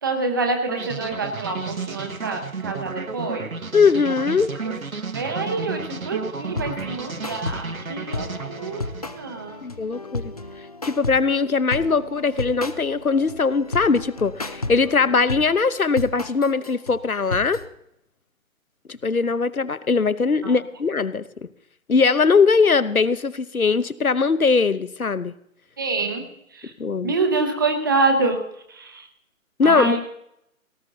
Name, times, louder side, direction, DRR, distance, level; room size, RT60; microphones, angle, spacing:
voice 1, 0.0-3.5 4.6-4.8 5.1-8.9 9.1-9.6 20.4-20.6 25.8-26.7 27.0-28.4 28.7-29.1 29.6-30.0, right 3 dB, 15° right, 5 dB, 0.8 m, -26 dB
sound 1, 0.7-9.7, right 4 dB, 75° right, 1.3 m, -33 dB
voice 2, 3.7-4.5 9.6-10.3 10.8-17.6 18.9-21.5 21.9-25.3 26.8-27.1 29.6-30.0, left 4 dB, 85° left, 16 dB, 0.9 m, -20 dB
sound 2, 6.5-17.7, left 2 dB, 30° left, 0.5 m, -33 dB
18.0 x 13.5 x 4.0 m, 0.76 s
figure-of-eight pair, 145°, 42 cm